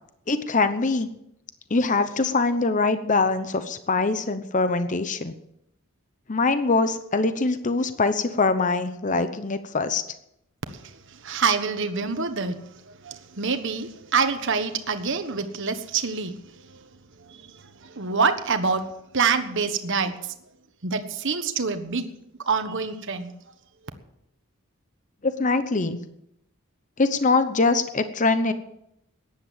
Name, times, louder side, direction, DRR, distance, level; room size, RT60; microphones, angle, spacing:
voice 1, 0.3-1.1 1.7-5.3 6.3-10.0 25.2-26.0 27.0-28.5, left 3 dB, 35° left, 11 dB, 0.8 m, -23 dB
voice 2, 11.2-12.6 13.0-16.4 17.2-18.9 19.1-20.2 20.8-22.1 22.5-23.3, right 5 dB, 60° right, 8 dB, 1.4 m, -26 dB
15.0 x 10.5 x 7.3 m, 0.79 s
head